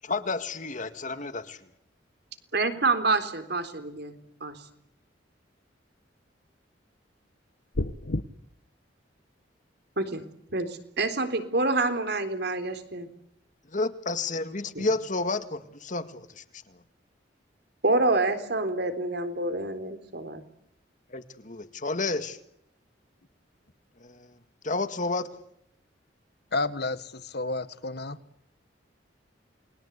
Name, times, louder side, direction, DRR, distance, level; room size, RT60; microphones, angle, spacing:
voice 1, 0.0-1.6 13.7-16.4 21.1-22.4 24.0-24.2 24.6-25.4, left 3 dB, 45° left, 10 dB, 2.0 m, -30 dB
voice 2, 2.5-4.2 4.4-4.6 10.0-10.2 10.5-13.1 14.8-14.9 17.8-20.4, right 2 dB, 60° right, 9 dB, 3.7 m, -27 dB
sound 1, 7.7-8.2, left 1 dB, 85° left, 1.5 m, -29 dB
voice 3, 26.5-28.2, left 2 dB, 60° left, 12 dB, 1.6 m, -31 dB
29.0 x 21.5 x 8.3 m, 0.77 s
head